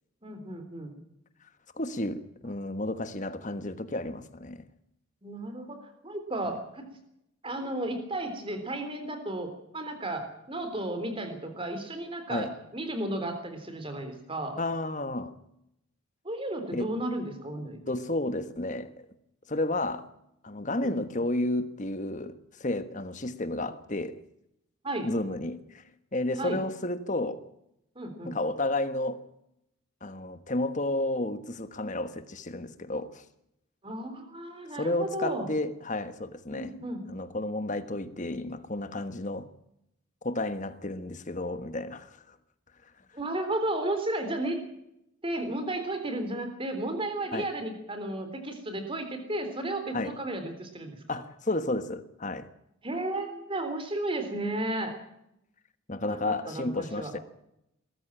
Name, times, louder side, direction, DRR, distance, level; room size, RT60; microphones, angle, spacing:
voice 1, 0.2-1.0 5.2-6.9 7.4-14.6 16.2-17.8 20.8-21.0 24.8-25.1 26.4-26.6 28.0-28.4 33.8-35.5 36.5-37.1 43.1-44.6 45.2-51.0 52.8-54.9 56.1-57.2, right 1 dB, 25° right, 3.6 m, -33 dB
voice 2, 1.8-4.6 12.3-12.5 14.6-15.4 16.7-16.9 17.9-18.9 19.5-20.1 20.4-24.2 25.0-25.8 26.1-27.4 28.2-29.2 30.0-33.2 34.7-36.7 37.1-39.5 40.2-42.3 47.3-47.5 49.9-50.1 51.1-52.5 55.9-57.2, left 2 dB, 35° left, 1.3 m, -32 dB
21.0 x 14.0 x 8.8 m
head